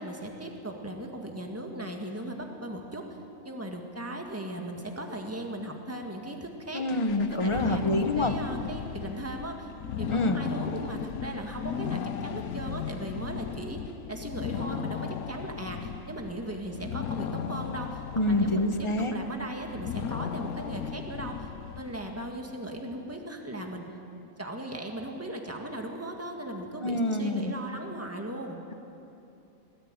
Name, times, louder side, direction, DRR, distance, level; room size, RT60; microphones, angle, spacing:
voice 1, 0.0-3.0 3.4-6.8 7.2-9.7 10.0-13.8 14.1-18.0 18.3-21.5 21.8-23.9 24.4-28.6, right 1 dB, 10° right, 2 dB, 1.8 m, -38 dB
voice 2, 6.7-8.3 10.1-10.4 18.1-19.1 26.8-27.5, left 1 dB, 25° left, 7 dB, 1.1 m, -26 dB
sound 1, 6.9-22.3, left 8 dB, 90° left, 1.2 m, -36 dB
20.0 x 15.0 x 8.9 m, 2.8 s
omnidirectional pair, 1.5 m